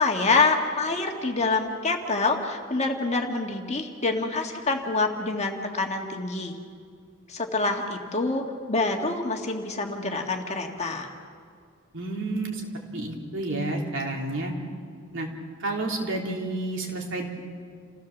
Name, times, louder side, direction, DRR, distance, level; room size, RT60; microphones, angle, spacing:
voice 1, 0.0-6.6 7.3-11.1, left 3 dB, 30° left, 3 dB, 1.9 m, -26 dB
voice 2, 11.9-12.6 12.9-14.5 15.1-15.3 15.6-17.3, right 2 dB, 65° right, 0 dB, 3.5 m, -30 dB
29.0 x 16.5 x 7.3 m, 2.1 s
head